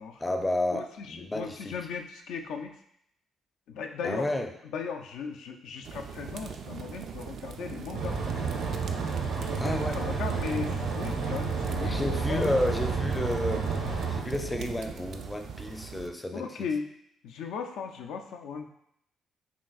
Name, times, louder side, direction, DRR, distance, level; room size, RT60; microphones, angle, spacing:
voice 1, 0.2-1.8 4.0-4.5 9.6-10.1 11.8-13.7 14.1-16.5, left 1 dB, 15° left, 5 dB, 0.4 m, -31 dB
voice 2, 0.7-2.8 3.7-4.3 4.7-8.2 9.4-12.0 12.3-12.6 16.3-16.9 17.2-18.7, left 6 dB, 85° left, 4 dB, 0.3 m, -37 dB
sound 1, 5.8-16.1, right 7 dB, 65° right, 0.3 m, -40 dB
sound 2, 7.9-14.2, right 5 dB, 90° right, 0.9 m, -31 dB
sound 3, 11.7-14.3, left 2 dB, 50° left, 0.8 m, -41 dB
5.7 x 2.5 x 2.3 m, 0.73 s
cardioid pair, 90°, 0 cm